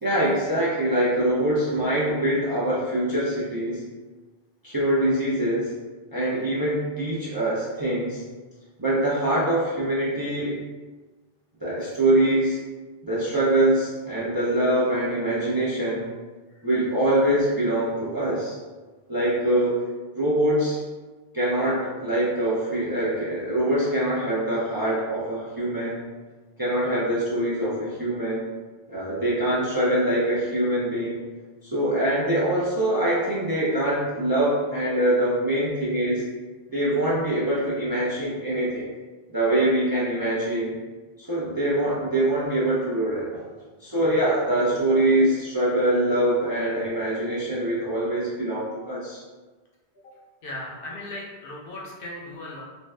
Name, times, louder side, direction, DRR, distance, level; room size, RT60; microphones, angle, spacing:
voice 1, 0.0-3.9 4.6-5.7 6.1-8.2 8.8-10.6 11.6-12.6 13.0-16.1 16.6-18.6 19.1-19.8 20.2-20.8 21.3-26.0 26.6-28.5 28.9-31.2 31.6-36.2 36.7-38.9 39.3-40.8 41.2-43.4 43.8-49.2, right 1 dB, 30° right, -8 dB, 0.5 m, -24 dB
voice 2, 50.4-52.6, left 1 dB, 60° left, -3 dB, 0.7 m, -37 dB
2.6 x 2.2 x 3.2 m, 1.3 s
omnidirectional pair, 1.1 m